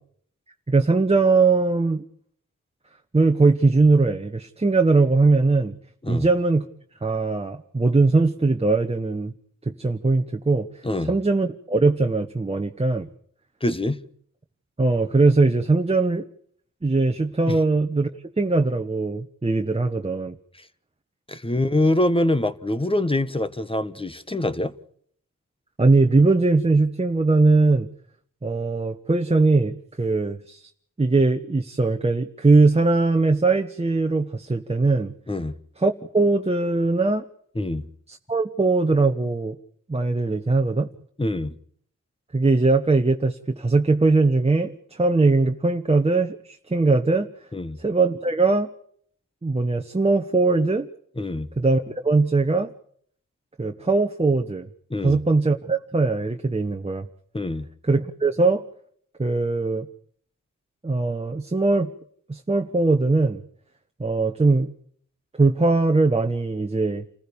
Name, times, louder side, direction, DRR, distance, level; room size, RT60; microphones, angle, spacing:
voice 1, 0.7-2.1 3.1-5.8 6.1-6.6 7.0-9.3 9.7-10.7 11.0-13.1 14.8-16.2 16.8-18.1 18.4-20.4 25.8-27.9 28.4-30.7 31.0-35.1 35.8-37.2 38.1-39.6 39.9-40.9 42.3-47.3 47.8-48.7 49.4-50.9 51.6-52.7 53.6-54.7 55.0-57.1 57.8-58.6 59.2-59.9 60.8-61.9 62.3-63.4 64.0-64.7 65.4-67.1, right 3 dB, 20° right, 1.3 m, -20 dB
voice 2, 13.6-14.0 17.5-17.6 21.3-24.7 35.3-35.5 37.5-37.9 41.2-41.5 47.5-47.8 51.2-51.5 54.9-55.2 57.3-57.7, left 1 dB, 15° left, 1.4 m, -24 dB
28.5 x 15.5 x 7.0 m
wide cardioid pair, 90°, 32 cm